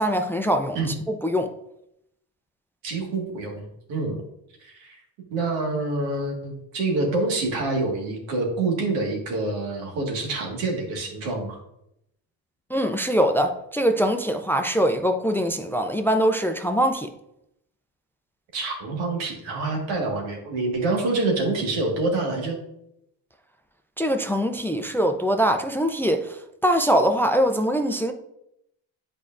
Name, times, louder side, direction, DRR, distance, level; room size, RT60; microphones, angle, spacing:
voice 1, 0.0-0.8 1.1-1.5 12.7-17.1 24.0-26.4 26.6-28.1, equal, 5° left, 0.5 m, -22 dB
voice 2, 2.8-4.2 4.6-5.0 5.3-11.6 18.5-22.6, right 2 dB, 80° right, 1.8 m, -26 dB
8.3 x 4.8 x 2.5 m
supercardioid pair, 70°, 44 cm